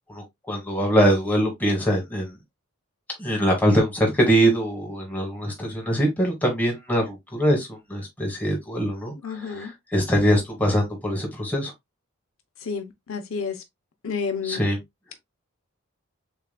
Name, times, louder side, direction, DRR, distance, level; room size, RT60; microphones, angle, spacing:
voice 1, 0.1-2.3 3.2-11.7 14.4-14.8, equal, 10° left, 1.4 m, -23 dB
voice 2, 9.2-9.7 12.7-13.6 14.0-14.6, left 5 dB, 70° left, 0.7 m, -30 dB
6.9 x 2.4 x 2.2 m
head